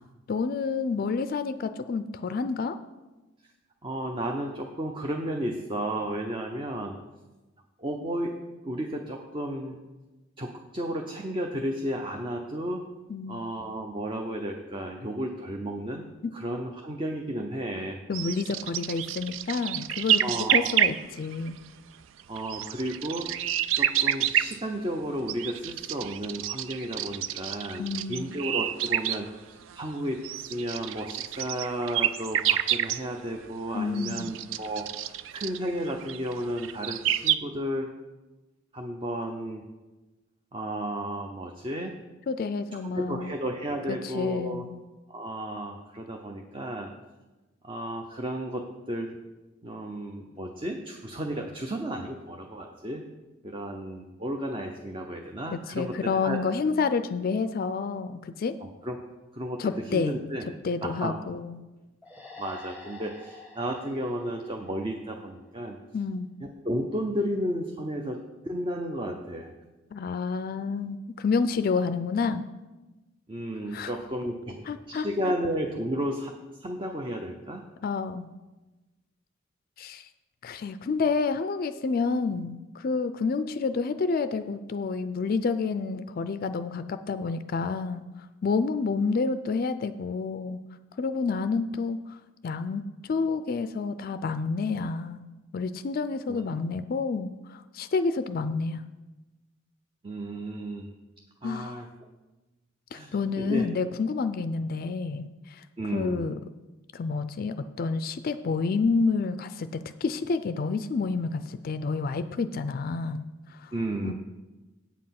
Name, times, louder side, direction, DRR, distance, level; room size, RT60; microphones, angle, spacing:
voice 1, 0.3-2.8 13.1-13.4 16.2-16.3 18.1-20.2 20.5-21.6 27.8-28.3 33.7-34.4 42.3-43.4 43.9-44.7 55.5-58.6 59.6-60.1 60.6-61.6 65.9-66.3 69.9-72.5 73.7-73.9 74.7-75.1 77.8-78.3 79.8-80.1 80.4-88.0 88.4-90.6 91.0-92.2 92.4-95.2 95.5-98.8 101.4-101.9 102.9-105.6 105.9-106.4 106.9-113.3 113.5-113.7 114.0-114.1, left 4 dB, 50° left, 11 dB, 0.4 m, -29 dB
voice 2, 3.8-7.0 7.8-8.4 8.6-9.8 10.4-12.8 13.3-16.1 16.3-18.0 20.2-20.8 22.3-23.3 23.7-37.9 38.7-39.6 40.5-41.9 42.8-44.7 45.1-46.9 47.6-49.2 49.6-53.0 53.4-56.0 56.2-56.4 58.6-59.0 59.3-60.4 60.8-61.2 62.4-65.8 66.4-69.5 73.3-76.3 76.6-77.7 96.3-96.4 100.0-100.9 101.4-101.9 102.9-103.7 105.8-106.3 113.7-114.1, right 1 dB, 25° right, 3 dB, 0.7 m, -33 dB
sound 1, 18.1-21.5 22.2-24.6 25.3-29.2 29.6-29.8 30.2-33.0 33.4-37.4, right 11 dB, 75° right, 0.4 m, -28 dB
sound 2, 62.0-65.5, left 3 dB, 10° right, 1.3 m, -48 dB
8.4 x 7.6 x 5.8 m, 1.1 s
head